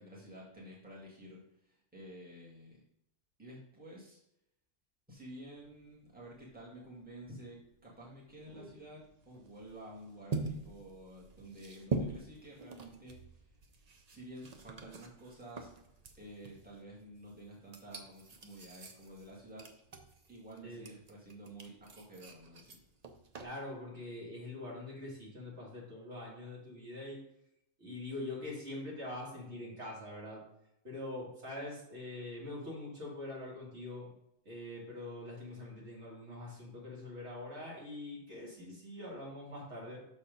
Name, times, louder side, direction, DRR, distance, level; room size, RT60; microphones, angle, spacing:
voice 1, 0.0-2.8 3.4-4.2 5.1-13.4 14.1-15.7 16.2-19.7 20.3-22.8, right 1 dB, 5° right, -5 dB, 1.8 m, -51 dB
sound 1, 5.6-23.4, right 3 dB, 40° right, 0.6 m, -45 dB
voice 2, 23.4-27.2 27.8-30.4 30.8-34.1 34.4-40.0, left 2 dB, 55° right, -4 dB, 2.3 m, -44 dB
6.3 x 4.3 x 5.2 m, 0.81 s
omnidirectional pair, 1.4 m